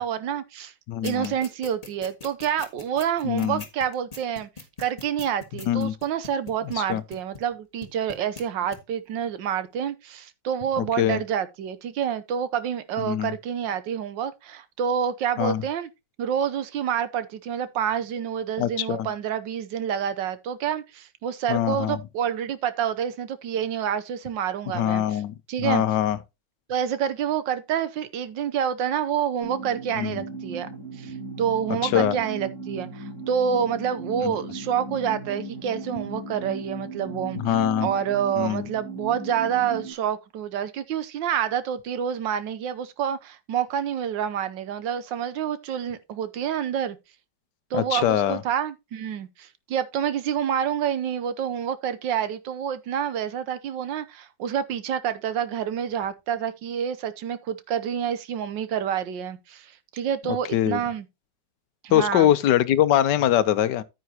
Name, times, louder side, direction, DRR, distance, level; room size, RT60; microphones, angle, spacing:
voice 1, 0.0-0.7 1.0-4.5 4.8-15.9 16.2-25.2 25.5-25.8 26.7-30.7 31.0-37.4 37.8-47.0 47.7-61.0 61.8-62.3, right 8 dB, 80° right, 1.5 m, -28 dB
voice 2, 0.9-1.3 3.2-3.6 5.7-5.9 6.8-7.0 10.8-11.2 13.1-13.3 15.4-15.6 18.6-19.1 21.5-22.0 24.7-26.2 30.0-30.2 31.8-32.2 34.2-34.3 37.4-37.9 38.4-38.7 47.7-48.4 60.5-60.8 61.9-63.8, left 11 dB, 75° left, 1.3 m, -23 dB
sound 1, 1.0-7.5 7.8-8.4 8.7-8.8, left 4 dB, 20° left, 1.5 m, -40 dB
sound 2, 29.4-39.9, right 3 dB, 60° right, 6.1 m, -37 dB
9.5 x 9.1 x 2.8 m
omnidirectional pair, 2.0 m